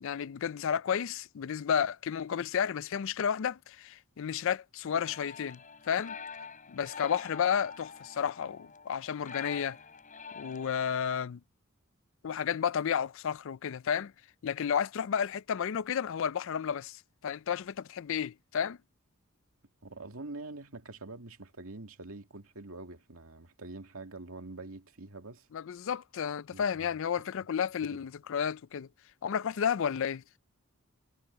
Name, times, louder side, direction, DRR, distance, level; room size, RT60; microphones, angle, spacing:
voice 1, 0.0-6.2 6.7-9.8 10.4-11.4 12.2-14.1 14.4-18.8 25.5-28.9 29.2-30.2, left 7 dB, 65° left, 0.4 m, -32 dB
sound 1, 4.9-11.1, left 5 dB, 40° left, 7.9 m, -46 dB
voice 2, 19.8-25.5 26.5-27.0 27.8-28.1, right 2 dB, 85° right, 2.3 m, -45 dB
head